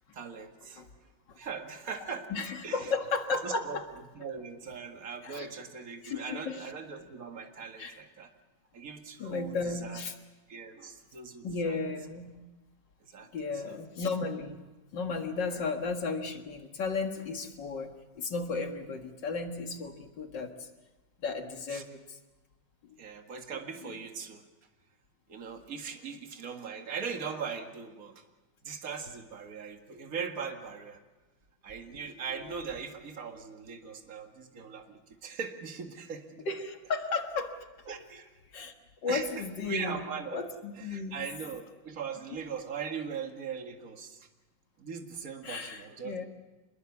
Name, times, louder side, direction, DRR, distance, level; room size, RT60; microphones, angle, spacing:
voice 1, 0.1-0.8 1.4-2.9 3.4-3.8 4.2-8.3 8.7-10.0 10.5-11.8 13.0-13.3 13.5-13.8 15.4-15.6 21.7-21.8 23.0-24.4 25.3-28.2 28.6-31.0 31.6-36.4 37.9-38.3 39.1-40.4 40.7-44.3 44.8-46.3, right 6 dB, 45° right, 4 dB, 2.1 m, -40 dB
voice 2, 2.3-3.9 5.2-5.5 6.0-6.6 7.8-8.0 9.2-10.1 11.4-12.3 13.3-14.6 14.9-20.7 21.2-22.2 23.8-23.9 36.5-37.5 38.5-38.7 39.0-40.0 40.3-41.2 45.4-46.3, left 4 dB, 65° left, 5 dB, 2.4 m, -34 dB
26.5 x 21.5 x 7.2 m, 1.2 s
omnidirectional pair, 2.1 m